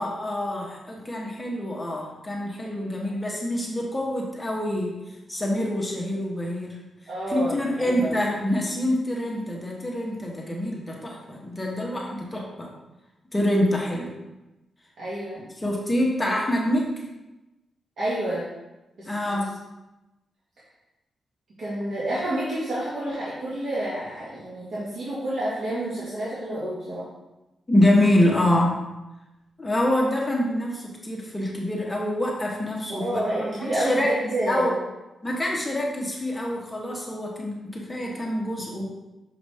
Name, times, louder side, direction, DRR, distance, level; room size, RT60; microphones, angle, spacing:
voice 1, 0.0-4.9 5.3-6.8 7.3-12.7 13.3-14.1 15.6-16.9 19.1-19.5 27.7-28.8 29.6-33.2 33.6-34.1 34.5-34.7 35.2-38.9, left 1 dB, 15° left, -2 dB, 1.1 m, -25 dB
voice 2, 7.1-8.1 15.0-15.4 18.0-18.5 19.0-19.5 21.6-27.1 33.0-34.7, right 1 dB, 70° right, -9 dB, 1.8 m, -29 dB
6.4 x 4.8 x 3.5 m, 1.0 s
wide cardioid pair, 120°, 0 cm